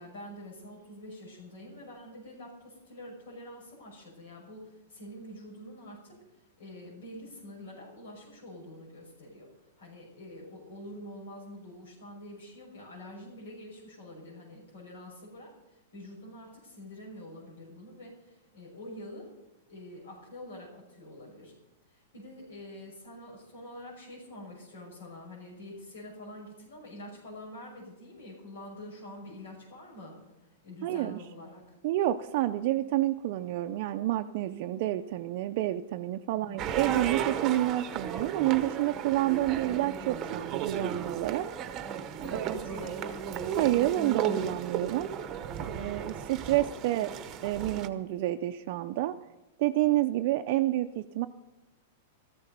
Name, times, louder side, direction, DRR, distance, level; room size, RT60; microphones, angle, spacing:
voice 1, 0.0-6.2 6.6-9.5 9.8-19.3 19.7-21.5 21.9-30.2 30.6-31.8 36.5-37.1 42.2-43.1 45.5-46.7, left 1 dB, 80° left, -4 dB, 5.9 m, -46 dB
voice 2, 30.8-31.2 31.8-41.5 42.3-42.5 43.6-45.1 45.7-47.1 47.4-49.2 49.6-51.3, right 15 dB, 45° right, 6 dB, 0.5 m, -29 dB
sound 1, 36.6-47.9, right 8 dB, 25° right, 0.9 m, -35 dB
14.0 x 14.0 x 5.3 m, 0.97 s
supercardioid pair, 165°, 0 cm